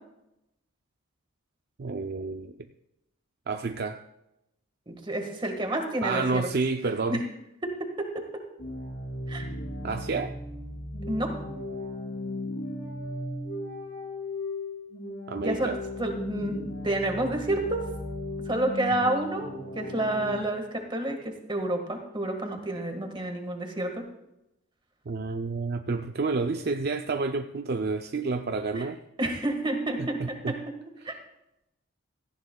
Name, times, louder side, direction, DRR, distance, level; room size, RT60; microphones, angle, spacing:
voice 1, 1.8-2.5 3.5-4.0 6.0-7.2 9.8-10.3 15.3-15.8 25.1-29.0 30.0-30.5 31.0-31.1, right 4 dB, 50° right, 6 dB, 0.4 m, -29 dB
voice 2, 4.9-6.5 7.1-7.2 7.6-8.4 9.3-9.5 11.1-11.3 15.3-15.7 16.0-17.8 18.5-24.0 28.7-28.8 29.2-30.5 31.0-31.1, right 1 dB, 20° right, 4 dB, 1.6 m, -29 dB
sound 1, 8.6-20.4, left 1 dB, 70° left, 5.0 m, -36 dB
17.5 x 14.5 x 2.3 m, 0.88 s
head